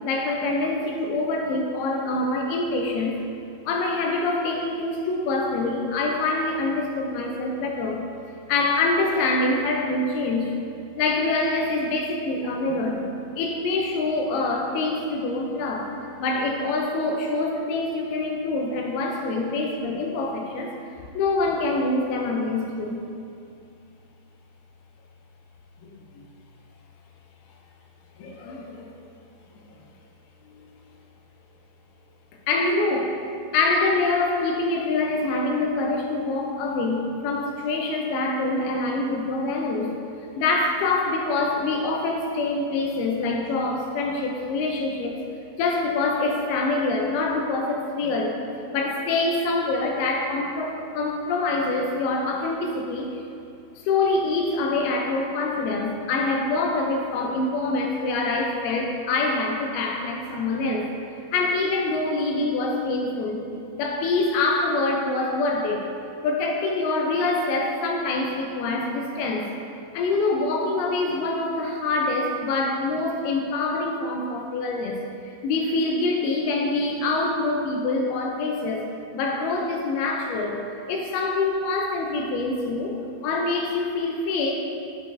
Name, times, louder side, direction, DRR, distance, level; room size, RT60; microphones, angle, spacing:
voice 1, 0.0-3.2 3.7-8.0 8.5-10.5 11.0-13.0 13.4-15.9 16.2-20.7 21.1-23.0 25.8-26.2 28.2-28.9 29.5-29.6 32.5-33.2 33.5-39.9 40.4-45.2 45.5-48.4 48.7-53.2 53.8-60.9 61.3-63.4 63.7-65.9 66.2-69.5 69.9-75.0 75.4-78.9 79.1-80.6 80.9-84.5, left 3 dB, 85° left, 1 dB, 2.5 m, -25 dB
8.5 x 5.8 x 2.5 m, 2.5 s
omnidirectional pair, 4.4 m